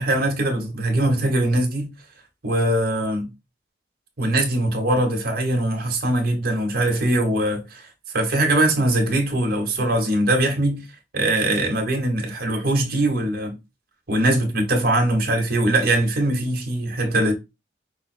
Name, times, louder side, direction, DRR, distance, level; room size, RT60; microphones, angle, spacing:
voice 1, 0.0-1.9 2.4-3.3 4.2-7.9 8.1-10.8 11.1-13.6 14.1-17.3, right 1 dB, 50° right, 1.4 m, -21 dB
5.5 x 2.1 x 4.3 m
head